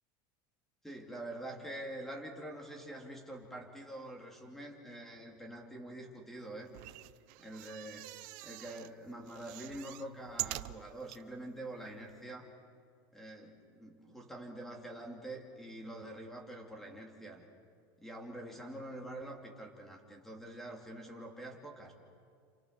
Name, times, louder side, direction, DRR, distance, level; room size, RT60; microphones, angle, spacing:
voice 1, 0.8-6.7 7.4-8.1 8.4-12.5 13.1-17.4 18.0-21.9, right 1 dB, 5° left, 1 dB, 2.9 m, -46 dB
sound 1, 6.7-8.9 9.3-11.2 11.8-11.9 12.1-12.2, right 20 dB, 60° right, 0.6 m, -44 dB
29.0 x 27.0 x 6.9 m, 2.2 s
supercardioid pair, 165°, 11 cm